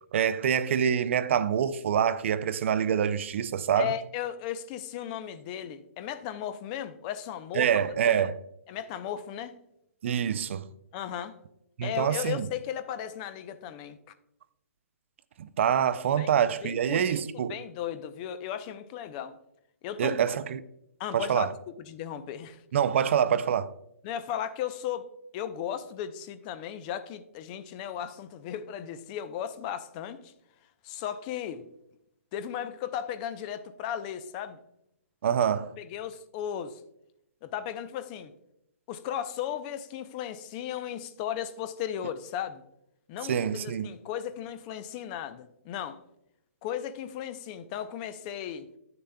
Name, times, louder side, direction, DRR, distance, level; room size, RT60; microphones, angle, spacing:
voice 1, 0.1-3.9 7.5-8.4 10.0-10.7 11.8-12.5 15.4-17.5 20.0-20.6 21.1-21.5 22.7-23.7 35.2-35.7 43.3-43.9, right 8 dB, 55° right, 0.4 m, -26 dB
voice 2, 3.8-7.7 8.0-8.2 8.7-9.5 10.9-11.4 11.8-14.0 16.2-17.2 17.5-19.3 19.8-20.2 21.0-21.5 21.9-22.6 24.0-25.1 25.3-30.3 30.8-31.6 32.3-34.6 35.8-36.8 37.4-38.3 38.9-42.6 43.1-46.0 46.6-48.7, left 10 dB, 30° left, 0.5 m, -36 dB
9.7 x 6.7 x 2.2 m
figure-of-eight pair, 130°, 8 cm